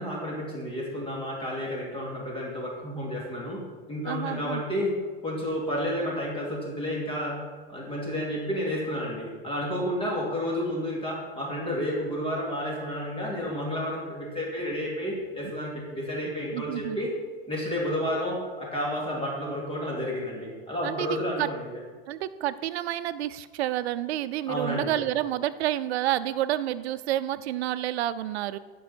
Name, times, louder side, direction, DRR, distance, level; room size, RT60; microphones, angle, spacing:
voice 1, 0.0-3.6 3.9-5.0 5.2-7.4 7.7-17.1 17.5-21.8 24.5-25.0, equal, 15° left, -4 dB, 2.9 m, -31 dB
voice 2, 4.0-4.6 16.5-17.0 20.8-21.5 22.1-28.6, right 13 dB, 85° right, 14 dB, 0.6 m, -29 dB
15.5 x 5.5 x 4.4 m, 1.5 s
supercardioid pair, 125°, 31 cm